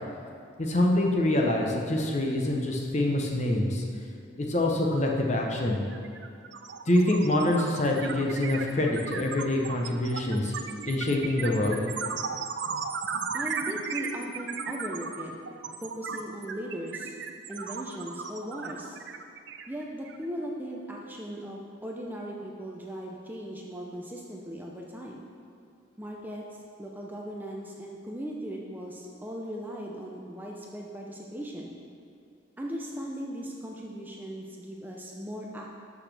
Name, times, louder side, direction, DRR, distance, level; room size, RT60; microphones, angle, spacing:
voice 1, 0.6-3.8 4.4-5.8 6.9-10.5 10.8-11.9, left 1 dB, 35° left, 0 dB, 0.8 m, -25 dB
sound 1, 5.4-5.6 5.9-20.2, right 5 dB, 60° right, 0.4 m, -36 dB
voice 2, 13.3-15.3 15.8-17.1 17.5-19.0 19.7-25.2 26.0-31.8 32.6-35.7, equal, 10° right, -1 dB, 0.5 m, -38 dB
12.0 x 6.0 x 3.4 m, 2.4 s
head